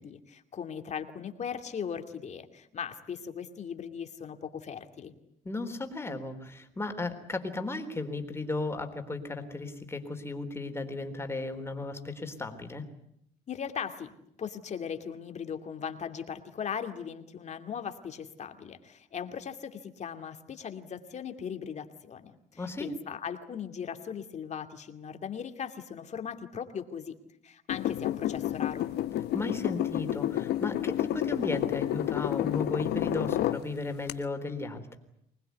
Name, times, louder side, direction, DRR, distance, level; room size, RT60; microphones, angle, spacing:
voice 1, 0.0-5.1 13.5-27.1 27.4-28.9, left 7 dB, 45° left, 6 dB, 2.6 m, -38 dB
voice 2, 5.4-12.8 22.6-22.9 29.3-35.0, left 2 dB, 15° left, 6 dB, 3.8 m, -35 dB
sound 1, 27.7-33.6 34.1-34.2, left 13 dB, 75° left, 1.2 m, -30 dB
24.5 x 20.0 x 9.5 m, 0.74 s
cardioid pair, 110°, 17 cm